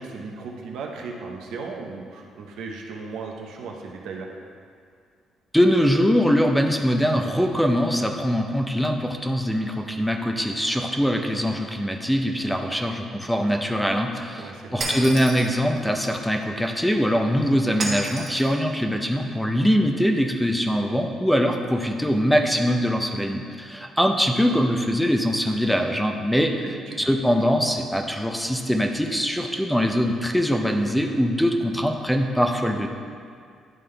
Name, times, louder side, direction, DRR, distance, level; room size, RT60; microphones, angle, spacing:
voice 1, 0.0-4.3 14.4-14.8 26.9-27.1, right 4 dB, 85° right, 1 dB, 0.8 m, -36 dB
voice 2, 5.5-26.6 27.0-32.9, equal, 5° left, 3 dB, 0.5 m, -22 dB
Shatter, 14.8-15.6 17.8-18.5, right 2 dB, 50° right, 1.4 m, -30 dB
10.5 x 3.7 x 3.3 m, 2.2 s
cardioid pair, 105°, 0 cm